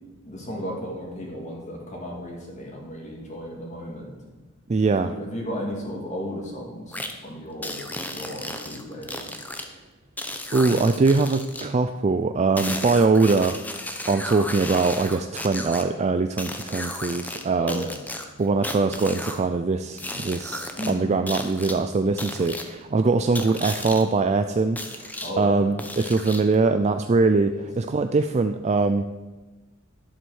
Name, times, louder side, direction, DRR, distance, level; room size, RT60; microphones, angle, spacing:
voice 1, 0.2-4.2 4.9-9.3 17.5-18.0 20.8-21.1 25.2-25.7 27.5-27.6, equal, 35° left, -2 dB, 2.1 m, -35 dB
voice 2, 4.7-5.1 10.5-13.6 14.1-17.9 18.4-25.0 25.4-29.0, right 3 dB, 30° right, 8 dB, 0.4 m, -22 dB
sound 1, 6.9-7.1 7.6-9.6 10.2-11.7 12.6-15.8 16.4-17.4 17.7-19.4 20.0-20.9 21.3-21.7 22.2-22.6 23.3-24.0 24.8-25.3 25.8-26.5, left 1 dB, 10° left, 0.9 m, -34 dB
11.0 x 7.8 x 6.3 m, 1.2 s
head